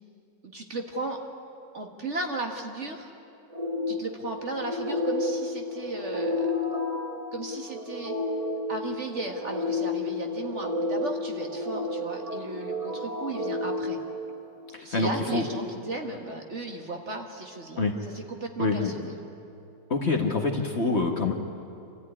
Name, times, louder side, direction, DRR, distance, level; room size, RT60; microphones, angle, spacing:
voice 1, 0.4-1.2 1.7-3.1 3.9-6.5 7.3-8.1 8.7-14.0 14.8-19.1, right 2 dB, 40° right, 3 dB, 1.8 m, -35 dB
sound 1, 3.5-14.8, left 2 dB, 25° right, 1.0 m, -31 dB
voice 2, 14.7-15.4 17.8-17.9 18.6-18.9 19.9-21.3, left 3 dB, 40° left, 2 dB, 1.6 m, -26 dB
26.5 x 14.0 x 9.8 m, 2.7 s
omnidirectional pair, 1.9 m